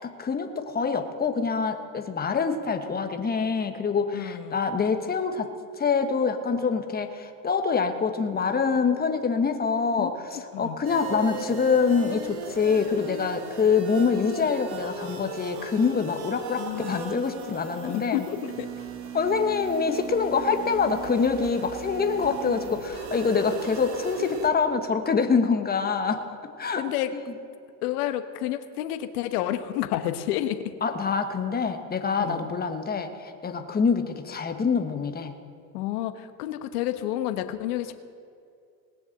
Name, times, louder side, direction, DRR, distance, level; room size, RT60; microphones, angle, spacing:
voice 1, 0.0-5.5 5.8-18.3 19.1-26.2 26.6-26.8 27.1-27.2 30.8-35.3, left 5 dB, 20° left, 6 dB, 1.2 m, -25 dB
voice 2, 4.1-4.6 10.0-10.1 10.5-10.8 16.6-17.0 17.8-18.7 26.8-27.1 27.8-30.6 32.2-32.5 35.7-37.9, left 13 dB, 70° left, 10 dB, 1.1 m, -30 dB
sound 1, 10.8-24.5, right 6 dB, 60° right, 1.9 m, -38 dB
19.0 x 7.2 x 6.6 m, 2.4 s
hypercardioid pair, 90°, 47 cm